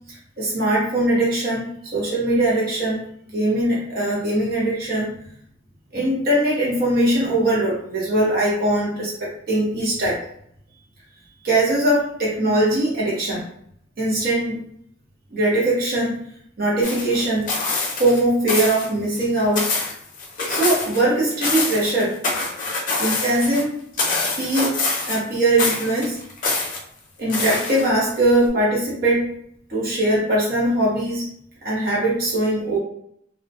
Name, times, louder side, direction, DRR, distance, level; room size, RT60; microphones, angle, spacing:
voice 1, 0.1-3.0 3.3-5.1 5.9-10.2 11.4-13.4 14.0-14.6 15.3-16.2 16.6-17.5 18.0-19.7 20.4-22.1 23.0-23.7 24.4-24.7 25.1-26.2 27.2-29.3 29.7-31.3 31.6-32.8, right 1 dB, 50° right, -6 dB, 0.9 m, -21 dB
sound 1, 16.8-18.2 18.5-18.9 19.2-21.0 21.3-23.6 24.0-25.3 25.6-26.8 27.3-28.1 28.5-28.6, left 3 dB, 45° left, 0.5 m, -25 dB
2.3 x 2.1 x 2.7 m, 0.68 s
head